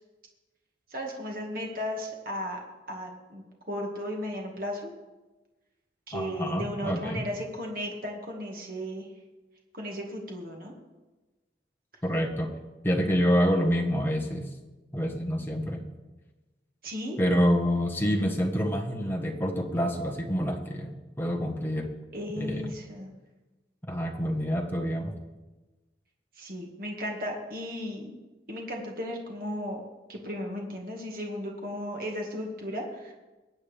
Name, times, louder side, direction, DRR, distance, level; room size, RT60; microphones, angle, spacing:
voice 1, 0.9-2.6 2.9-4.9 6.1-9.1 9.7-10.7 16.8-17.2 22.1-23.1 26.4-28.1 28.5-29.8 30.1-33.1, equal, 55° right, 0 dB, 2.0 m, -35 dB
voice 2, 6.1-7.2 12.0-12.5 12.8-14.5 14.9-15.8 17.2-21.9 22.4-22.7 23.9-25.1, equal, 10° left, 1 dB, 1.3 m, -27 dB
22.0 x 8.4 x 3.5 m, 1.2 s
head